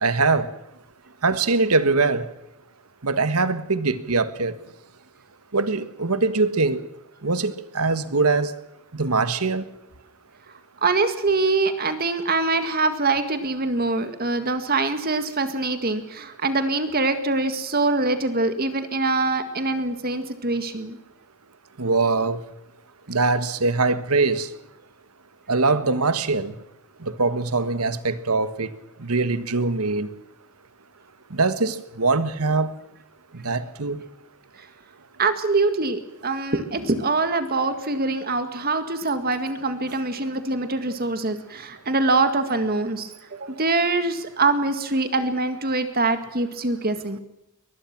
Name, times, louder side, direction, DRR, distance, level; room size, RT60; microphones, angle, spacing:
voice 1, 0.0-0.5 1.2-2.2 3.0-4.5 5.5-6.8 7.2-8.5 9.0-9.6 21.8-22.4 23.1-24.5 25.5-26.5 27.0-28.7 29.0-30.1 31.3-32.7 33.4-34.0, right 3 dB, 90° right, 1.5 m, -22 dB
voice 2, 10.8-21.0 35.2-47.2, right 3 dB, 45° right, 1.9 m, -24 dB
23.0 x 20.5 x 6.1 m
head